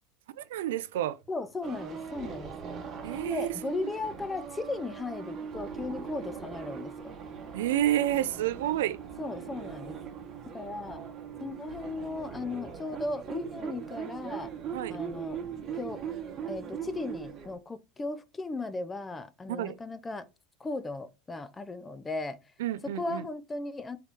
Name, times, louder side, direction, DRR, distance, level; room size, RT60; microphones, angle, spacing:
voice 1, 0.4-1.2 3.0-3.9 7.5-9.0 14.7-15.0 19.5-19.8 22.6-23.3, right 12 dB, 85° right, 0.3 m, -30 dB
voice 2, 1.3-2.8 3.2-7.1 9.2-10.0 10.5-11.0 11.4-14.5 14.9-15.4 15.8-16.0 16.5-20.3 20.6-22.4 23.0-24.0, left 3 dB, 15° left, 0.5 m, -36 dB
sound 1, 1.6-17.6, right 7 dB, 35° right, 1.0 m, -40 dB
4.5 x 3.0 x 3.4 m
supercardioid pair, 120°, 0 cm